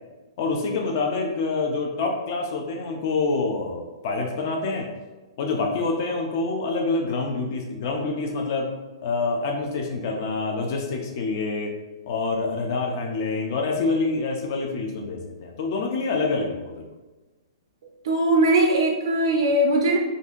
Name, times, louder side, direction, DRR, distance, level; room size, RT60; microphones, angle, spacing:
voice 1, 0.4-4.9 5.4-8.7 9.0-11.7 12.1-16.9, left 3 dB, 30° left, 1 dB, 0.3 m, -26 dB
voice 2, 18.0-20.0, right 1 dB, 45° right, 0 dB, 0.3 m, -20 dB
2.6 x 2.5 x 3.6 m, 1.2 s
hypercardioid pair, 180°, 3 cm